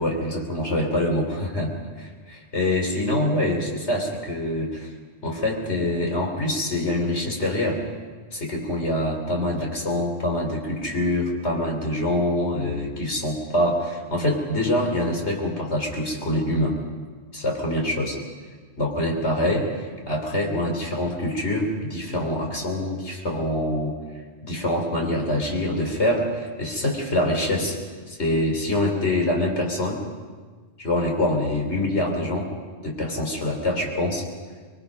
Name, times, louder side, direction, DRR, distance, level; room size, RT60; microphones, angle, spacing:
voice 1, 0.0-4.9 5.2-7.8 8.3-16.8 17.3-18.2 18.8-23.9 24.5-27.8 28.1-30.0 30.8-32.5 32.8-34.3, left 1 dB, 85° left, 1 dB, 3.9 m, -25 dB
25.5 x 22.0 x 5.4 m, 1.5 s
omnidirectional pair, 1.1 m